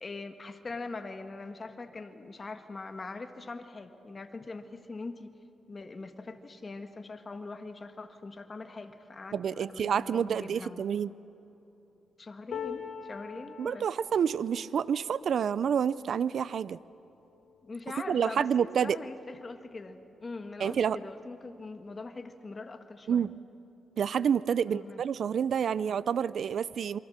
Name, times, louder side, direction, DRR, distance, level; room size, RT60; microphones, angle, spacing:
voice 1, 0.0-5.3 5.7-10.9 12.2-13.9 17.6-23.3 24.7-25.0, left 3 dB, 35° left, 7 dB, 1.7 m, -42 dB
voice 2, 9.3-11.1 13.6-16.8 18.1-19.0 20.6-21.0 23.1-23.3 24.0-27.0, right 7 dB, 65° right, 18 dB, 0.5 m, -28 dB
sound 1, 12.5-18.7 19.2-19.4 19.7-20.5 21.5-21.6, left 7 dB, 70° left, 3.7 m, -45 dB
27.5 x 23.5 x 6.6 m, 2.9 s
cardioid pair, 90°, 0 cm